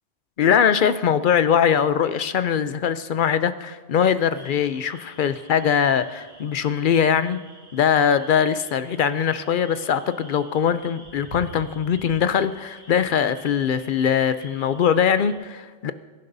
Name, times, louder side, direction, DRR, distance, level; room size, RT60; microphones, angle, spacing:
voice 1, 0.4-7.4 7.7-15.9, left 8 dB, 60° left, 12 dB, 0.6 m, -21 dB
sound 1, 4.3-15.3, right 1 dB, 55° right, 3.5 m, -47 dB
23.0 x 11.0 x 2.7 m, 1.3 s
omnidirectional pair, 1.2 m